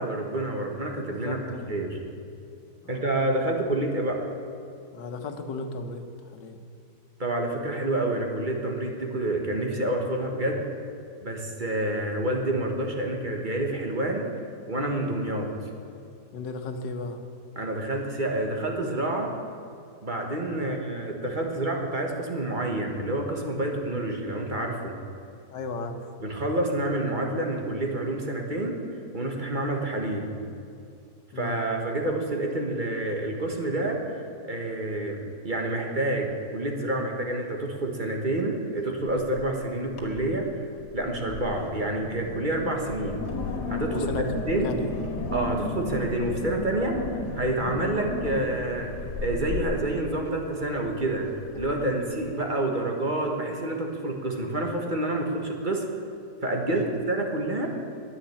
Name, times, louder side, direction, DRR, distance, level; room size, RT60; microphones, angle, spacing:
voice 1, 0.0-1.4 1.7-2.0 2.9-4.2 7.2-10.6 11.2-14.3 14.7-15.5 17.5-19.3 20.0-25.0 26.2-28.8 29.1-30.3 31.3-40.5 40.9-43.2 43.7-44.1 44.5-44.8 45.3-48.9 49.2-51.3 51.5-55.8 56.4-57.7, right 1 dB, 30° right, 2 dB, 1.5 m, -28 dB
voice 2, 1.2-1.7 2.8-3.0 4.9-6.0 6.3-6.6 16.3-17.2 20.6-20.8 25.5-26.0 31.3-31.6 43.9-44.9 56.7-56.9, left 3 dB, 90° left, 6 dB, 1.8 m, -35 dB
Wind, 39.1-39.6 39.9-40.4 40.8-52.3, left 3 dB, 70° left, 2.1 m, -35 dB
10.0 x 9.8 x 9.9 m, 2.6 s
omnidirectional pair, 1.8 m